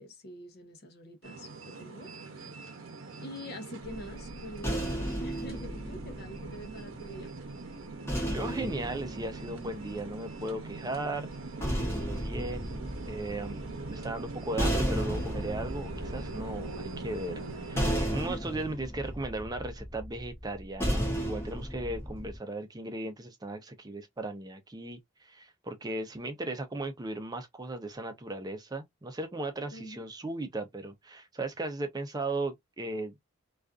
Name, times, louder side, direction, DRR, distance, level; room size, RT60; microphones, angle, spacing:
voice 1, 0.0-2.1 2.3-2.5 3.2-4.9 5.2-7.3 18.3-18.4 29.7-30.0, equal, 50° left, 0.6 m, -45 dB
sound 1, 1.2-17.9, right 3 dB, 90° right, 0.7 m, -42 dB
sound 2, 3.8-7.1 8.1-10.3 11.3-22.4, equal, 10° left, 0.7 m, -34 dB
voice 2, 8.3-11.3 11.7-12.8 13.1-33.2, right 2 dB, 20° right, 0.5 m, -37 dB
2.4 x 2.4 x 2.3 m
head